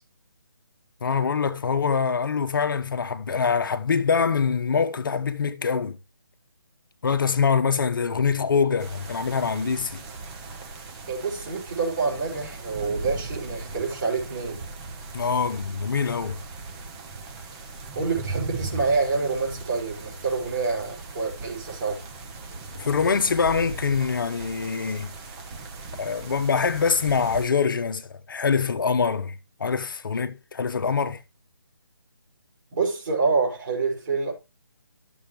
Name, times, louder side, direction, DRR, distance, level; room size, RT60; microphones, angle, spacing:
voice 1, 1.0-6.0 7.0-10.0 15.1-16.4 22.7-25.1 26.0-29.3 29.6-31.2, left 5 dB, 55° left, 1.0 m, -24 dB
sound 1, 8.8-27.4, right 3 dB, 15° right, 0.9 m, -38 dB
voice 2, 11.1-14.7 17.9-22.0 32.7-34.3, right 4 dB, 50° right, 5.0 m, -27 dB
12.5 x 7.1 x 3.2 m
figure-of-eight pair, 155°, 13 cm